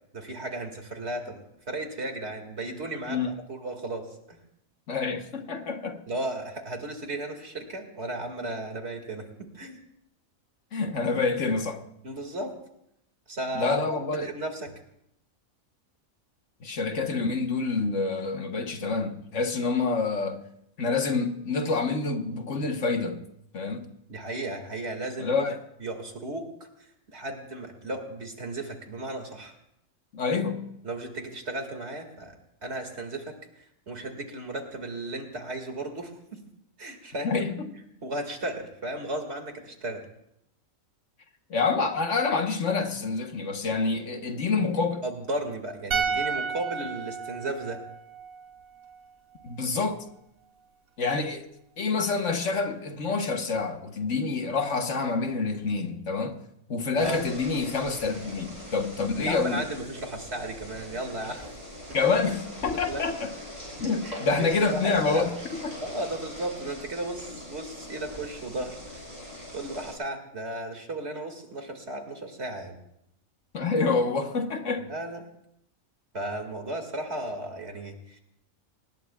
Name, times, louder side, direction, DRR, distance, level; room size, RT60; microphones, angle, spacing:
voice 1, 0.1-3.2 3.5-4.4 6.1-9.8 12.0-12.5 13.3-14.7 24.1-25.5 25.8-26.7 27.1-29.6 30.8-32.4 32.6-36.4 36.8-37.3 38.0-40.0 45.0-47.8 57.0-57.2 59.2-61.4 62.7-63.0 64.0-65.3 65.8-69.1 69.5-72.8 74.9-75.2 76.1-78.2, right 1 dB, 50° right, 2.3 m, -35 dB
voice 2, 4.9-6.0 10.7-11.8 13.5-14.3 16.6-20.5 20.8-23.2 23.5-23.9 25.2-25.6 30.1-30.7 37.2-37.7 41.5-45.0 49.4-50.0 51.0-51.5 51.8-56.4 56.7-59.6 61.9-63.3 63.8-65.8 73.5-74.9, left 4 dB, 60° left, 1.5 m, -27 dB
sound 1, 45.9-49.1 49.4-49.5, right 6 dB, 80° right, 1.6 m, -32 dB
sound 2, 57.0-69.9, left 1 dB, 30° right, 7.4 m, -41 dB
24.5 x 20.0 x 2.3 m
omnidirectional pair, 1.4 m